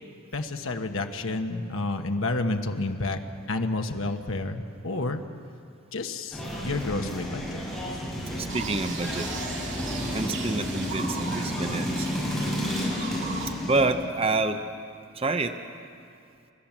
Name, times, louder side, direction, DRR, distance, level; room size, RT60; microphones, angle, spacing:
voice 1, 0.3-5.2 5.9-7.6 10.1-10.2, left 2 dB, 70° left, 5 dB, 1.3 m, -30 dB
sound 1, 6.3-13.8, equal, ahead, 6.4 m, -31 dB
voice 2, 8.3-9.3 10.1-12.1 13.6-14.6 15.1-15.6, right 3 dB, 25° right, 7 dB, 0.7 m, -27 dB
sound 2, 8.5-13.5, right 5 dB, 55° right, 2.4 m, -38 dB
30.0 x 13.5 x 7.3 m, 2.4 s
head